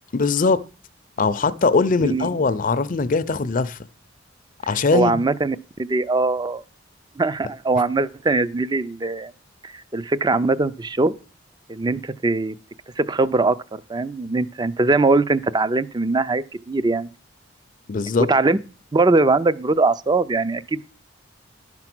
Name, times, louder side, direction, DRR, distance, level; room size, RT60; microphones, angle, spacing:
voice 1, 0.1-0.6 1.2-3.8 4.7-5.2 17.9-18.3, left 4 dB, 45° left, 0.5 m, -20 dB
voice 2, 4.9-6.6 7.2-9.3 9.6-11.2 11.7-12.6 13.0-17.1 18.3-18.6 18.9-20.8, right 3 dB, 20° right, 0.4 m, -21 dB
12.0 x 5.9 x 6.0 m
head